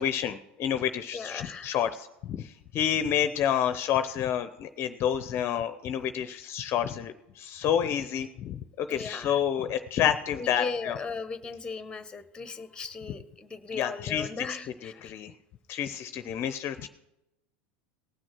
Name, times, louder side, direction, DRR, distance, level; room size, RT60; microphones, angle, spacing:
voice 1, 0.0-11.0 13.7-14.5 14.8-15.3 15.7-16.9, left 9 dB, 40° left, 11 dB, 0.7 m, -29 dB
voice 2, 1.1-1.8 8.9-9.4 10.3-15.2, left 5 dB, 15° left, 12 dB, 1.1 m, -37 dB
18.5 x 6.2 x 6.1 m, 0.91 s
hypercardioid pair, 100°, 6 cm